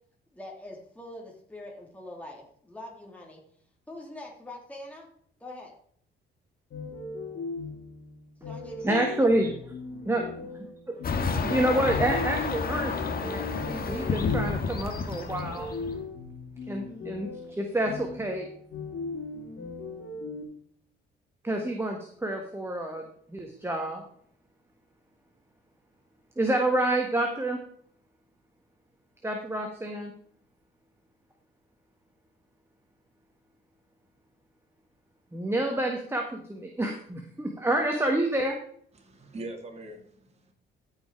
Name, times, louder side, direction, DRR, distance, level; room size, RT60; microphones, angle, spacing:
voice 1, 0.3-3.4 3.9-5.1 5.4-5.7 8.4-9.3, left 1 dB, 5° left, -1 dB, 2.8 m, -44 dB
sound 1, 6.7-20.4, left 3 dB, 70° left, 3.0 m, -38 dB
voice 2, 8.8-9.5 10.0-10.2 11.4-15.7 16.7-17.3 17.6-18.5 21.4-23.0 23.3-24.0 26.4-27.6 29.2-30.1 35.3-38.6, right 1 dB, 10° right, 2 dB, 1.7 m, -28 dB
sound 2, 11.0-16.1, left 5 dB, 50° left, 1.7 m, -30 dB
voice 3, 38.9-40.5, right 2 dB, 35° right, 2 dB, 2.7 m, -42 dB
14.0 x 5.6 x 4.6 m, 0.62 s
cardioid pair, 90°, 20 cm